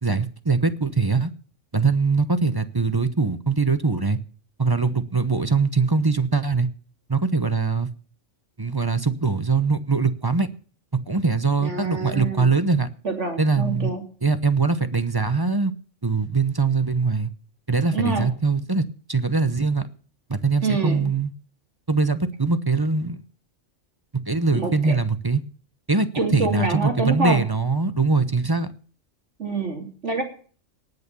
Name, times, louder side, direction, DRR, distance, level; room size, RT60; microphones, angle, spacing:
voice 1, 0.0-1.3 1.7-4.2 4.6-6.7 7.1-7.9 8.6-10.5 11.1-12.9 13.4-13.9 14.2-15.7 16.0-17.3 17.7-19.8 20.3-21.3 21.9-23.2 24.3-25.4 25.9-28.7, right 4 dB, 20° right, 12 dB, 0.7 m, -22 dB
voice 2, 11.6-12.5 13.0-14.0 17.9-18.3 20.6-21.1 24.5-24.9 26.1-27.4 29.4-30.2, right 4 dB, 60° right, 4 dB, 3.4 m, -26 dB
18.5 x 6.8 x 6.9 m, 0.42 s
omnidirectional pair, 1.4 m